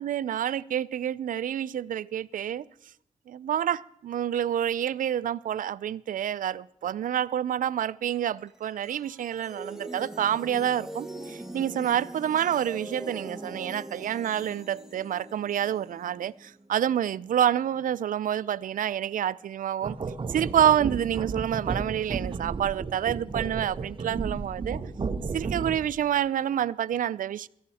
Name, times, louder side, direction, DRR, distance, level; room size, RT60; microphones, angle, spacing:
voice 1, 0.0-2.7 3.3-20.0 20.3-24.8 25.3-27.5, right 10 dB, 80° right, 0.4 m, -28 dB
sound 1, 8.4-17.6, right 1 dB, 5° right, 1.4 m, -42 dB
sound 2, 19.8-26.0, right 4 dB, 40° right, 0.8 m, -33 dB
17.0 x 14.0 x 4.1 m
wide cardioid pair, 135°, 14 cm